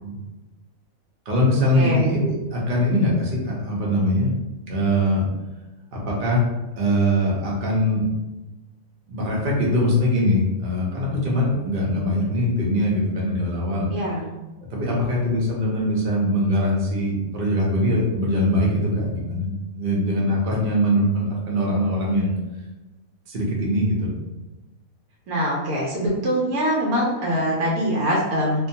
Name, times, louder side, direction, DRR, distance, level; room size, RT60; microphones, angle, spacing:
voice 1, 1.3-4.3 4.7-5.2 5.9-6.4 6.8-8.1 9.1-13.9 14.7-22.3 23.3-24.1, equal, 45° right, -3 dB, 0.7 m, -22 dB
voice 2, 13.9-14.2 25.3-28.7, equal, 85° right, -3 dB, 1.1 m, -23 dB
2.6 x 2.2 x 2.7 m, 1.1 s
omnidirectional pair, 1.5 m